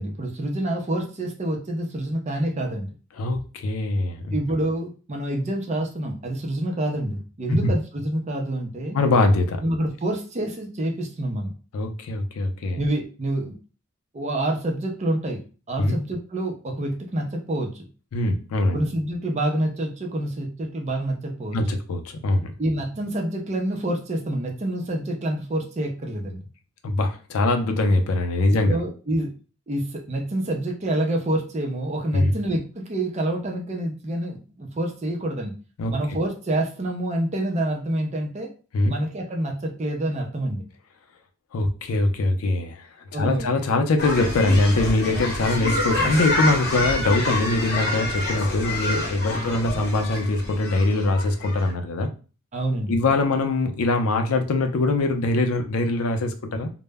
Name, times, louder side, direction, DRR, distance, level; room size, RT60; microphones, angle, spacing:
voice 1, 0.0-2.9 4.3-9.0 9.6-11.5 12.8-13.5 14.1-15.4 15.7-17.9 18.7-21.6 22.6-26.4 28.7-29.3 29.7-35.5 35.9-38.5 38.9-40.6 43.1-43.5 45.2-45.3 49.3-49.5 52.5-53.0, right 1 dB, 30° right, 2 dB, 0.5 m, -27 dB
voice 2, 3.2-4.4 7.5-7.7 8.9-9.6 11.7-12.8 15.8-16.0 18.1-18.8 21.5-22.5 26.8-28.8 32.1-32.3 35.8-35.9 38.7-38.9 41.5-42.9 43.2-52.1 52.9-56.7, left 2 dB, 90° left, 6 dB, 0.4 m, -22 dB
sound 1, 44.0-51.7, left 1 dB, 50° left, 0.9 m, -27 dB
2.0 x 2.0 x 3.3 m, 0.35 s
head